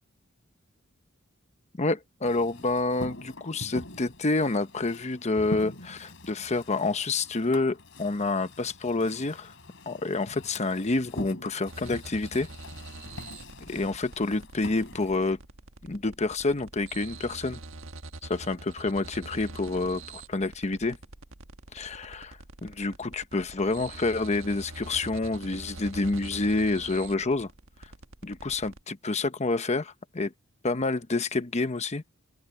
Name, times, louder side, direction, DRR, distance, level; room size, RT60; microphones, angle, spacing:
voice 1, 1.8-9.5 9.9-12.5 13.7-15.4 15.9-17.6 18.2-21.0 21.7-27.5 28.2-30.3 30.6-32.0, left 3 dB, 35° left, 0.9 m, -28 dB
sound 1, 2.2-15.3, left 1 dB, 65° left, 7.6 m, -44 dB
sound 2, 11.7-28.8, right 2 dB, 75° right, 1.5 m, -45 dB
open air
head